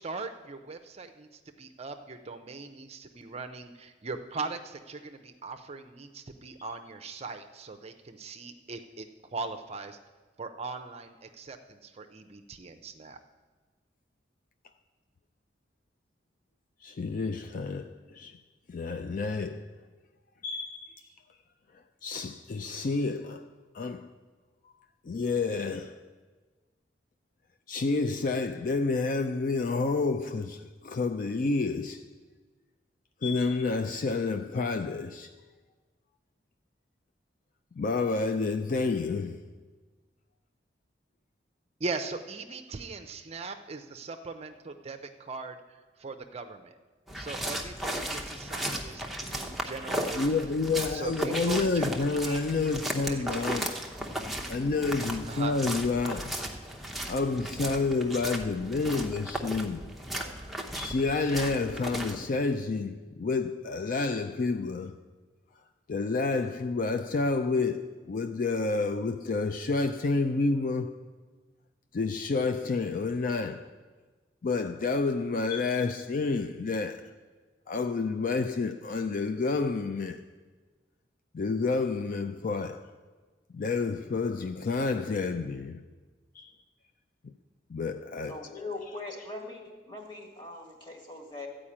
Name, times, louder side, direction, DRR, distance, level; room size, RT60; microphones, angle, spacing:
voice 1, 0.0-9.0 9.3-10.0 10.4-13.2 41.8-46.7 47.2-50.4 50.9-51.9 52.2-52.4 53.1-53.4 55.3-55.6, right 3 dB, 35° right, 0.6 m, -40 dB
voice 2, 16.8-18.4 18.7-19.7 20.4-20.9 22.0-23.5 23.7-24.1 25.1-26.0 27.7-32.0 33.2-35.3 37.8-39.4 50.2-53.8 54.5-56.3 57.1-59.9 60.7-64.9 65.9-71.0 71.9-73.7 74.4-77.0 77.7-80.2 81.3-82.9 83.5-85.8 86.4-86.5 87.2-87.3 87.7-88.4, left 3 dB, 50° left, 0.4 m, -29 dB
sound 1, 47.1-62.2, right 1 dB, ahead, 0.8 m, -36 dB
voice 3, 88.3-91.5, left 2 dB, 30° left, 1.8 m, -41 dB
13.0 x 5.0 x 8.6 m
head